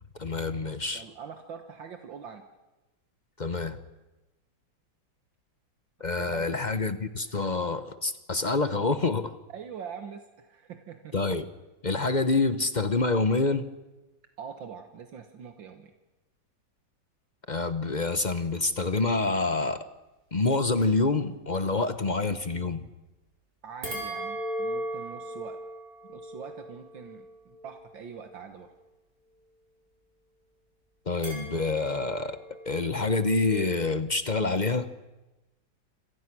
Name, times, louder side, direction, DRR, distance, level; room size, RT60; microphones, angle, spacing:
voice 1, 0.2-1.0 3.4-3.8 6.0-9.3 11.1-11.5 11.8-13.7 17.5-19.8 20.3-22.9 31.1-32.4 32.7-34.9, left 3 dB, 35° left, 11 dB, 0.7 m, -27 dB
voice 2, 0.9-2.4 6.2-6.5 9.5-11.1 14.4-15.9 23.6-25.6 26.1-28.7, right 7 dB, 75° right, 6 dB, 2.1 m, -43 dB
sound 1, 23.8-28.3 31.2-33.8, equal, 50° right, 5.9 m, -38 dB
27.5 x 27.0 x 6.2 m, 1.0 s
omnidirectional pair, 2.1 m